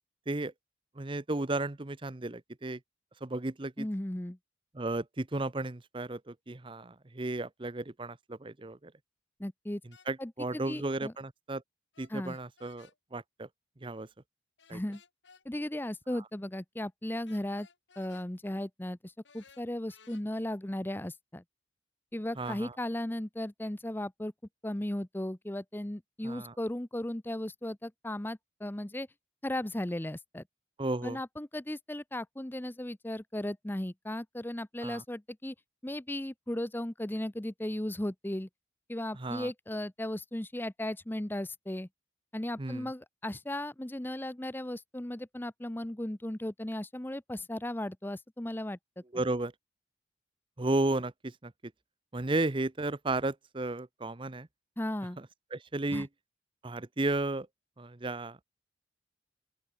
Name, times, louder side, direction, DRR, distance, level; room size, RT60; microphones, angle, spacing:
voice 1, 1.0-2.8 3.2-3.9 4.7-8.9 9.9-11.6 12.0-13.5 13.8-14.1 14.7-14.8 22.4-22.7 26.2-26.5 30.8-31.2 34.8-35.0 39.1-39.5 42.6-42.9 49.1-49.5 50.6-51.7 52.1-54.5 55.2-55.3 55.5-56.1 56.6-57.5 57.8-58.4, right 2 dB, 30° right, 0.8 m, -34 dB
voice 2, 3.8-4.4 9.4-9.8 10.2-11.1 12.1-12.4 14.7-15.0 15.4-17.7 18.0-21.4 22.1-24.3 24.6-29.1 29.4-30.4 31.0-35.5 35.8-38.5 38.9-41.9 42.3-49.0 54.8-55.2 55.9-56.1, left 1 dB, 10° left, 0.7 m, -36 dB
sound 1, 9.9-10.1 11.9-13.0 14.6-15.4 17.3-18.3 19.2-20.2, left 5 dB, 85° left, 2.6 m, -59 dB
open air
head